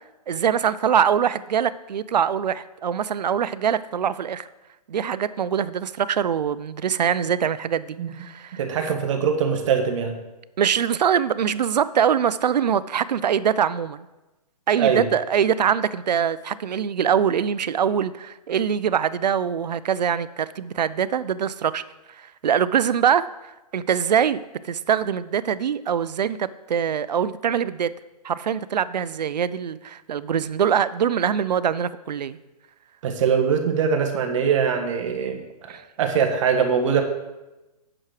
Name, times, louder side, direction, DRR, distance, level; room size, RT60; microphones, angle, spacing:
voice 1, 0.3-4.5 4.9-8.6 10.6-14.0 14.7-21.8 22.4-24.4 24.7-27.9 28.2-32.4 35.7-35.8, right 8 dB, 90° right, 17 dB, 0.5 m, -23 dB
voice 2, 8.5-10.2 14.8-15.1 33.0-37.0, right 6 dB, 50° right, 4 dB, 1.3 m, -22 dB
8.7 x 6.0 x 4.8 m, 1.0 s
hypercardioid pair, 145°, 21 cm